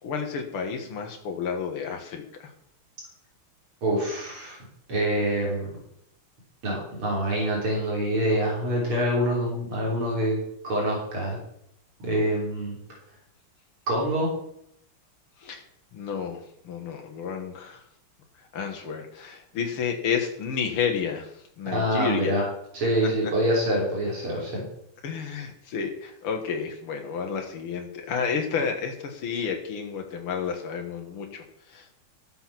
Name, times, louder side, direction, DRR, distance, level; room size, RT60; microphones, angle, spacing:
voice 1, 0.0-2.5 15.4-15.6 15.9-17.8 18.4-22.4 23.0-23.3 25.0-32.0, left 6 dB, 90° left, 3 dB, 2.3 m, -31 dB
voice 2, 3.8-4.6 4.9-5.7 6.6-11.4 12.0-12.8 13.9-14.3 21.7-22.4 22.7-24.6, right 1 dB, 80° right, -3 dB, 4.4 m, -25 dB
14.0 x 8.0 x 5.9 m, 0.75 s
omnidirectional pair, 2.3 m